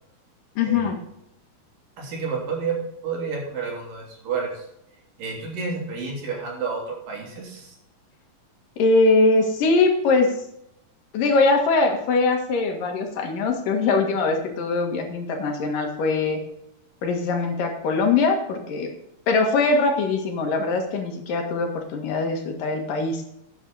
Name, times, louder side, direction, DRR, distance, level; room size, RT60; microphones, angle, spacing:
voice 1, 0.6-1.0 8.8-10.3 11.1-16.4 17.0-18.9 19.3-23.2, left 3 dB, 85° left, 3 dB, 3.5 m, -22 dB
voice 2, 2.0-4.6 5.2-7.8, right 5 dB, 90° right, -1 dB, 5.0 m, -30 dB
13.0 x 9.2 x 4.0 m, 0.78 s
omnidirectional pair, 3.8 m